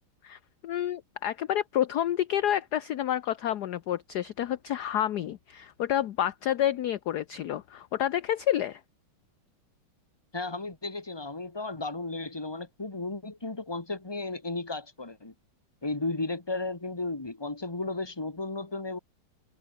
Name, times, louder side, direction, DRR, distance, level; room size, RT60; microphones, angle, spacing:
voice 1, 0.2-8.8, left 11 dB, 65° left, 1.1 m, -29 dB
voice 2, 10.3-15.3 15.8-19.0, left 3 dB, 10° left, 2.0 m, -34 dB
omnidirectional pair, 2.3 m